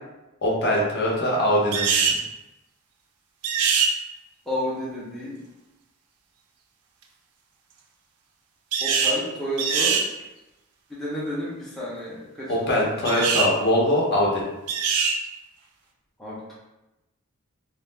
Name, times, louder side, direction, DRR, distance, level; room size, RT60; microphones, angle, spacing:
voice 1, 0.4-2.2 12.5-14.4, left 1 dB, 50° left, -3 dB, 0.6 m, -22 dB
sound 1, 1.7-2.2 3.4-3.9 8.7-9.2 9.6-10.1 13.0-13.5 14.7-15.2, right 5 dB, 85° right, 0.4 m, -22 dB
voice 2, 4.5-5.4 8.8-10.0 10.9-13.1 16.2-16.5, equal, ahead, -8 dB, 0.4 m, -31 dB
2.3 x 2.0 x 3.1 m, 0.98 s
head